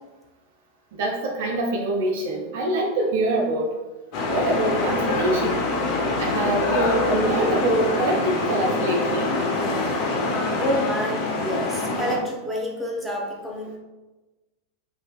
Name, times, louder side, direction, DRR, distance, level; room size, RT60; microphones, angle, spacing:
voice 1, 1.0-3.7 4.3-5.7 6.2-9.4, right 2 dB, 65° right, 1 dB, 0.4 m, -24 dB
sound 1, 4.1-12.2, left 2 dB, 50° left, 0.6 m, -25 dB
voice 2, 10.6-13.8, equal, 10° right, -1 dB, 0.7 m, -28 dB
3.1 x 2.5 x 2.3 m, 1.2 s
hypercardioid pair, 90°, 0 cm